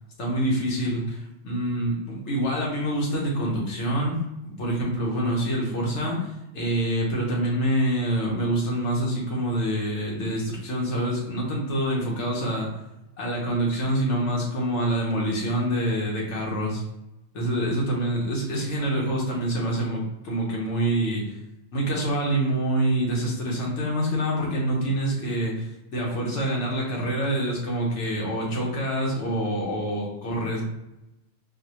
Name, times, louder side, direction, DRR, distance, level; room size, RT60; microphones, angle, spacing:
voice 1, 0.2-4.2 4.6-12.8 13.2-16.8 17.3-21.4 21.7-30.6, right 1 dB, 65° left, -3 dB, 1.3 m, -26 dB
4.5 x 2.2 x 2.9 m, 0.92 s
omnidirectional pair, 1.3 m